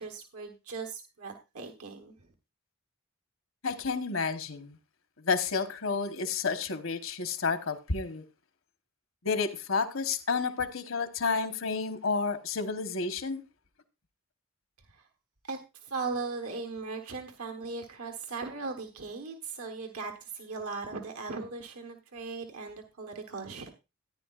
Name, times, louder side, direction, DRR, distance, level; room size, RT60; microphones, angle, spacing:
voice 1, 0.0-2.1 14.9-15.0 15.4-23.7, right 4 dB, 85° right, 1.3 m, -38 dB
voice 2, 3.6-4.8 5.2-8.2 9.2-13.4, left 4 dB, 65° left, 1.1 m, -30 dB
14.0 x 10.0 x 2.4 m
head